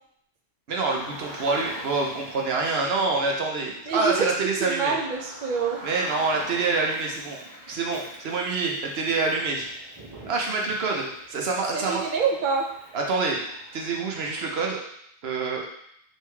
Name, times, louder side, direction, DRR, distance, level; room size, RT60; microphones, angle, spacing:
voice 1, 0.7-4.9 5.8-9.7 10.3-12.0 12.9-13.4 13.7-14.8 15.2-15.7, right 3 dB, 75° right, 0 dB, 1.0 m, -26 dB
Car, 0.9-14.6, right 1 dB, 25° right, 1.1 m, -44 dB
voice 2, 3.9-4.3 4.6-5.8 11.7-12.7, right 5 dB, 55° right, 0 dB, 0.7 m, -26 dB
3.4 x 2.8 x 4.6 m, 0.71 s
omnidirectional pair, 1.1 m